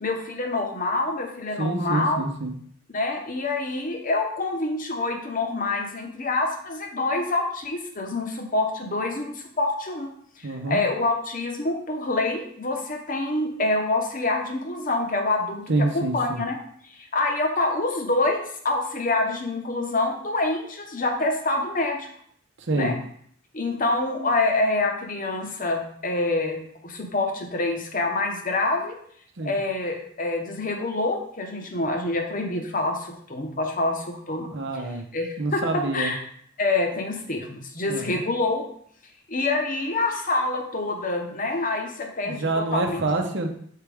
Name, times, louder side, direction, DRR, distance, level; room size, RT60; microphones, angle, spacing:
voice 1, 0.0-2.2 2.9-10.1 10.4-15.6 15.9-16.6 16.9-22.1 22.7-22.9 23.5-29.0 29.4-34.5 35.1-36.2 36.6-38.6 39.3-43.0, left 2 dB, 40° left, 3 dB, 1.0 m, -26 dB
voice 2, 1.6-2.5 10.4-10.8 15.7-16.4 22.6-22.9 29.4-29.6 34.5-35.0 35.4-36.1 37.9-38.2 42.2-43.5, right 2 dB, 60° right, 4 dB, 0.7 m, -27 dB
6.6 x 4.7 x 3.4 m, 0.64 s
head